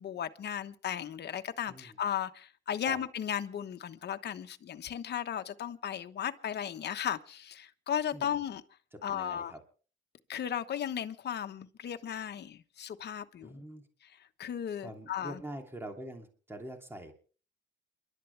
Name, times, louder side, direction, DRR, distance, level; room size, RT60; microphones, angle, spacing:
voice 1, 0.0-8.6 9.0-9.5 10.3-13.6 14.4-15.4, left 9 dB, 55° left, 1.2 m, -35 dB
voice 2, 1.7-2.0 2.8-3.0 8.1-8.4 8.9-9.6 13.4-13.8 14.8-17.1, right 1 dB, 10° right, 2.8 m, -44 dB
28.5 x 12.0 x 3.4 m
cardioid pair, 90°, 20 cm